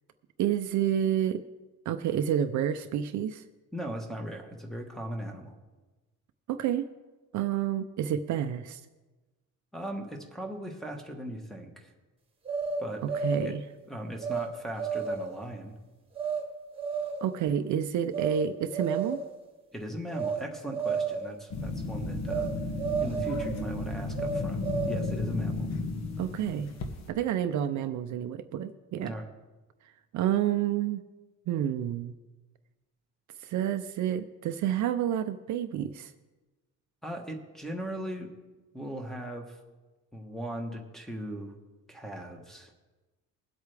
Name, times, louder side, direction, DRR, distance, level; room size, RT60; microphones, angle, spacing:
voice 1, 0.4-1.4 1.9-3.4 6.5-6.9 7.3-8.8 13.0-13.6 17.2-19.2 26.2-26.8 27.1-29.1 30.1-31.0 31.5-32.1 33.4-36.1, right 10 dB, 55° right, 9 dB, 0.5 m, -29 dB
voice 2, 3.7-5.6 9.7-11.9 12.8-13.1 13.4-13.6 13.9-15.7 19.7-22.5 23.0-24.6 24.9-25.7 29.0-29.3 37.0-38.3 38.7-39.6 40.1-41.5 41.9-42.7, right 1 dB, ahead, 0 dB, 1.0 m, -38 dB
sound 1, 12.4-13.6 14.2-14.5 14.8-15.4 16.2-16.4 16.8-17.3 18.1-18.4 18.7-19.4 20.1-20.4 20.7-21.3 22.3-22.5 22.8-23.6 24.1-25.2, right 5 dB, 15° right, 1.3 m, -32 dB
sound 2, 21.5-27.1, left 3 dB, 50° left, 1.3 m, -34 dB
21.5 x 8.2 x 3.3 m, 1.2 s
cardioid pair, 175°, 35 cm